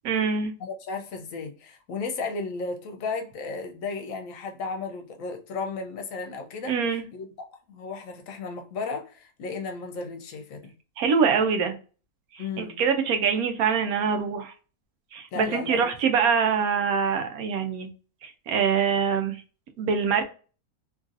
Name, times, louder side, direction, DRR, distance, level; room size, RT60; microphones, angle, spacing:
voice 1, 0.0-0.5 6.7-7.0 11.0-11.7 12.3-14.5 15.1-17.9 18.2-19.4 19.8-20.2, right 6 dB, 85° right, 1.1 m, -24 dB
voice 2, 0.6-6.8 7.1-7.3 7.7-10.7 12.4-12.8 15.3-15.9, left 4 dB, 70° left, 1.0 m, -34 dB
2.9 x 2.6 x 2.5 m
omnidirectional pair, 1.5 m